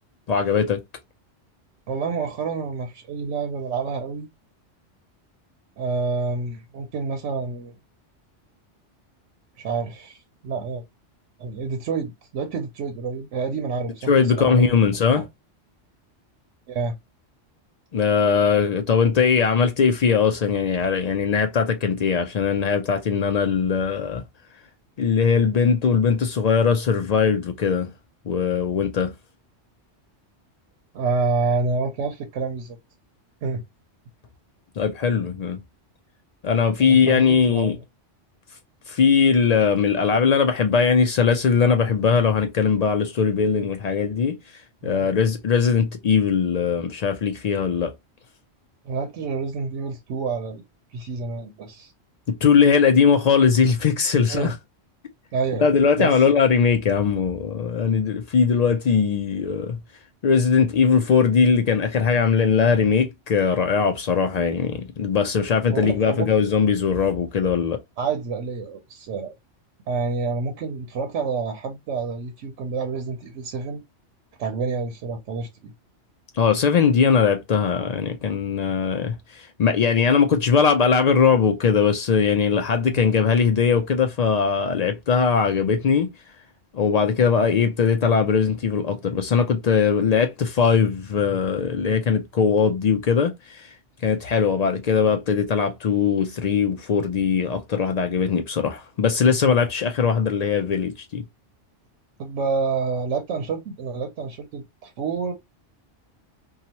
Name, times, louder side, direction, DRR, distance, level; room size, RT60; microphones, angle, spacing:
voice 1, 0.3-0.8 14.1-15.2 17.9-24.2 25.0-27.9 28.3-29.1 34.8-35.6 36.4-37.8 38.9-44.4 44.8-47.9 52.3-54.5 55.6-59.8 60.2-67.8 76.4-86.1 86.7-93.7 94.0-101.2, left 6 dB, 80° left, 0.3 m, -20 dB
voice 2, 1.9-4.3 5.8-7.7 9.6-10.8 11.4-14.7 15.1-15.3 16.7-17.0 30.9-32.8 33.4-33.6 36.8-37.8 44.8-45.1 48.8-50.6 50.9-51.9 54.3-54.5 55.3-55.6 56.0-56.2 65.7-66.3 68.0-69.3 69.9-73.8 74.4-75.7 82.8-83.0 102.2-105.3, right 4 dB, 80° right, 0.9 m, -28 dB
2.8 x 2.3 x 2.8 m
omnidirectional pair, 1.2 m